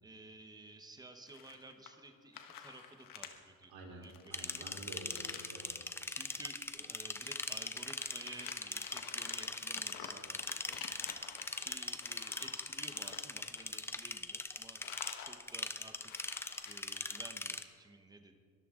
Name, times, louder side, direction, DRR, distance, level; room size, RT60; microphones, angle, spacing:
voice 1, 0.0-4.7 6.1-10.8 11.6-14.8 15.2-16.1 16.7-18.4, right 2 dB, 10° right, 6 dB, 0.9 m, -53 dB
sound 1, 1.3-2.1 2.3-3.3 3.6-3.7 4.0-5.6 6.1-6.4 6.7-14.1 14.4-15.4 15.7-15.8 15.9-17.2, left 8 dB, 65° left, 1.4 m, -51 dB
voice 2, 3.7-5.8, right 2 dB, 90° right, 0 dB, 3.7 m, -49 dB
sound 2, 4.3-17.6, left 2 dB, 5° left, 0.4 m, -41 dB
22.5 x 13.5 x 3.7 m, 2.1 s
cardioid pair, 170°, 36 cm